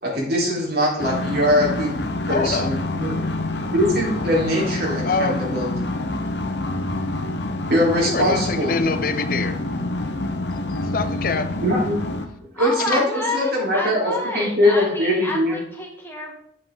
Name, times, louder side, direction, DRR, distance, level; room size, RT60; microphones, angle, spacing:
voice 1, 0.0-3.2 3.7-5.7 7.7-8.7 11.6-12.0 12.5-13.0 13.3-15.6, left 1 dB, 60° right, -4 dB, 3.9 m, -22 dB
sound 1, 1.0-12.3, left 2 dB, 70° left, 0.9 m, -27 dB
voice 2, 2.3-2.7 5.0-5.4 8.0-9.6 10.7-11.5, left 4 dB, 50° left, 9 dB, 0.6 m, -25 dB
voice 3, 12.5-16.3, left 1 dB, 15° left, -1 dB, 1.7 m, -29 dB
8.8 x 7.7 x 3.9 m, 0.69 s
head